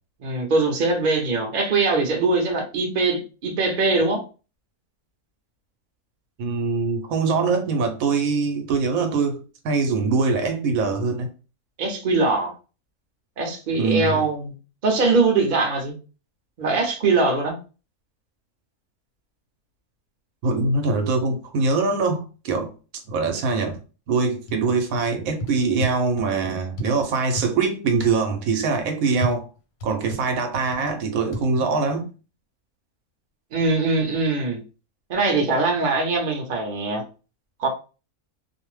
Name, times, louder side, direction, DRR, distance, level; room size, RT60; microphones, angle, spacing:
voice 1, 0.2-4.2 11.8-12.5 13.4-14.5 14.8-15.9 16.6-17.5 33.5-34.6 35.1-37.0 37.6-37.7, right 3 dB, 50° right, 0.6 m, -22 dB
voice 2, 6.4-11.3 13.8-14.2 20.4-22.7 23.1-23.8 24.1-29.5 29.8-32.0, right 4 dB, 75° right, 1.0 m, -23 dB
sound 1, 24.5-25.0 25.4-26.3 26.8-27.5 28.0-28.2 29.2-30.9 31.3-31.5, right 1 dB, 90° left, 1.1 m, -31 dB
2.5 x 2.0 x 3.1 m
omnidirectional pair, 1.5 m